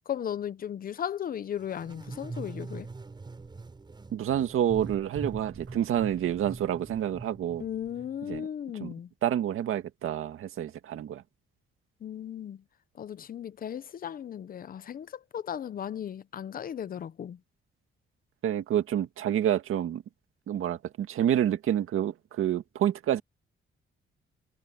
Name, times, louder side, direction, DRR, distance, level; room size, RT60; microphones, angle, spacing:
voice 1, 0.1-2.9 7.6-9.1 12.0-12.6 13.0-17.4, left 9 dB, 45° left, 0.6 m, -36 dB
sound 1, 1.6-8.4, right 3 dB, 20° right, 7.0 m, -43 dB
voice 2, 4.1-7.7 8.3-8.5 8.8-8.9 9.2-11.2 18.4-20.0 20.5-23.2, right 10 dB, 80° right, 2.0 m, -28 dB
wide cardioid pair, 170°, 21 cm